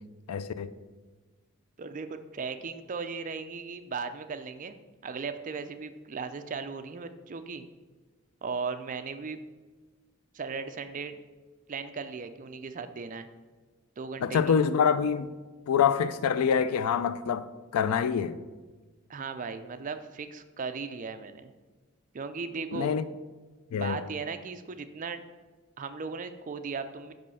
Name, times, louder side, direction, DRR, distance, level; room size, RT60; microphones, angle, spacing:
voice 1, 0.3-0.7 14.2-15.3 15.7-17.5 17.7-18.4 22.7-23.0 23.7-24.0, left 7 dB, 90° left, 0.4 m, -25 dB
voice 2, 1.8-4.8 5.0-7.7 8.4-9.4 10.3-11.2 11.7-13.3 14.0-14.5 19.1-21.5 22.1-22.9 23.7-25.2 25.8-27.1, right 5 dB, 35° right, 0.4 m, -37 dB
5.5 x 5.3 x 5.5 m
head